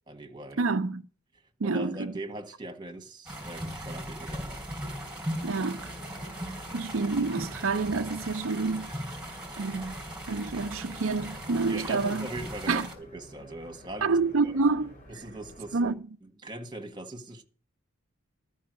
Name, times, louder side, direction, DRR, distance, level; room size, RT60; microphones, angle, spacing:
voice 1, 0.1-0.7 1.6-4.6 11.7-14.2 14.4-14.5 15.1-15.9 16.2-17.4, right 1 dB, 20° right, 1.8 m, -41 dB
voice 2, 0.6-1.0 1.6-2.1 5.4-5.9 6.7-8.9 9.6-10.0 10.3-12.3 12.7-12.9 14.0-14.9 15.7-15.9, right 4 dB, 75° right, 0.6 m, -28 dB
sound 1, 3.3-12.9, equal, 5° right, 3.2 m, -38 dB
sound 2, 5.3-15.9, equal, 35° left, 3.0 m, -50 dB
13.0 x 5.6 x 7.9 m
head